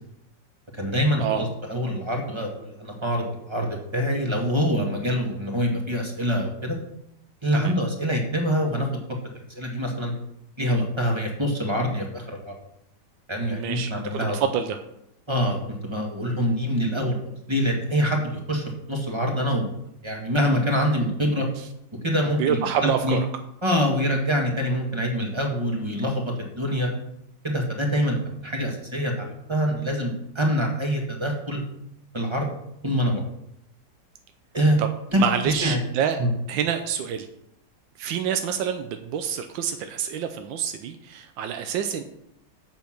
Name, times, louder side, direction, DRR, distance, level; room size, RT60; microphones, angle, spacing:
voice 1, 0.7-6.8 7.4-8.9 9.5-10.1 10.6-12.5 13.3-14.4 15.3-17.2 17.5-19.7 20.0-21.5 22.0-22.7 23.0-23.2 23.6-26.9 27.4-31.6 32.1-32.5 32.8-33.2 34.5-34.8 35.1-35.2 35.4-35.8 36.2-36.3, equal, 15° right, 1 dB, 1.6 m, -25 dB
voice 2, 13.4-14.8 22.4-23.2 34.8-34.9 35.2-36.2 36.5-37.3 38.0-42.0, right 8 dB, 90° right, 7 dB, 1.4 m, -27 dB
7.6 x 7.2 x 5.9 m, 0.79 s
omnidirectional pair, 2.0 m